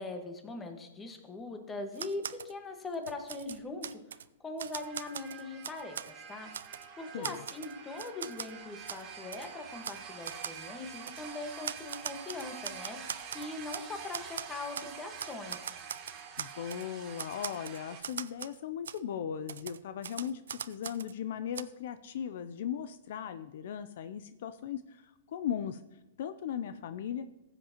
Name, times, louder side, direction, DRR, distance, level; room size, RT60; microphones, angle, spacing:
voice 1, 0.0-6.5 7.0-15.7, left 3 dB, 15° left, 6 dB, 1.4 m, -41 dB
Typewriter, 1.9-2.5 2.9-4.2 4.6-6.1 6.5-6.9 7.2-8.5 8.9-9.0 9.3-9.5 9.8-10.0 10.2-10.6 11.1-11.2 11.6-13.9 14.1-14.9 15.2-16.8 17.2-18.6 18.8-19.0 19.5-21.1 21.5-21.6, right 8 dB, 85° right, 0.4 m, -41 dB
sound 1, 4.7-18.0, right 7 dB, 35° right, 1.4 m, -47 dB
voice 2, 16.4-25.8 26.2-27.3, left 9 dB, 65° left, 12 dB, 0.5 m, -38 dB
15.0 x 7.9 x 2.9 m, 0.99 s
hypercardioid pair, 135°, 0 cm